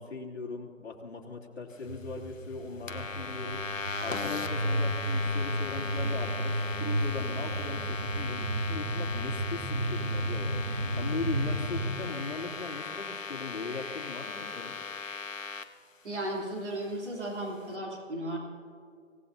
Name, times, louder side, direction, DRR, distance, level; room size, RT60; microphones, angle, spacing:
voice 1, 0.0-3.6 4.0-14.7, left 4 dB, 55° left, -2 dB, 3.1 m, -39 dB
sound 1, 1.8-11.9, right 1 dB, 35° right, 1.7 m, -32 dB
sound 2, 2.9-15.6, left 4 dB, 75° left, 1.2 m, -38 dB
voice 2, 16.0-18.4, right 1 dB, 60° right, -2 dB, 3.4 m, -35 dB
26.0 x 18.0 x 2.8 m, 2.3 s
figure-of-eight pair, 155°, 39 cm